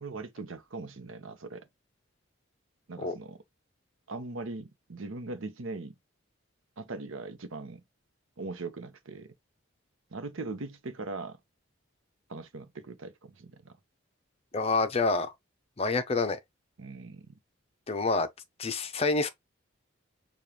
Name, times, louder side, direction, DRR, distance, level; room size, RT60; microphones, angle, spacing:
voice 1, 0.0-1.7 2.9-3.4 4.1-5.9 6.8-7.8 8.4-9.3 10.1-11.4 12.3-13.8 16.8-17.4 18.9-19.0, right 3 dB, 75° right, 0.8 m, -40 dB
voice 2, 14.5-15.3 15.8-16.4 17.9-18.3 18.6-19.3, left 3 dB, 30° left, 0.5 m, -27 dB
6.8 x 2.4 x 2.9 m
head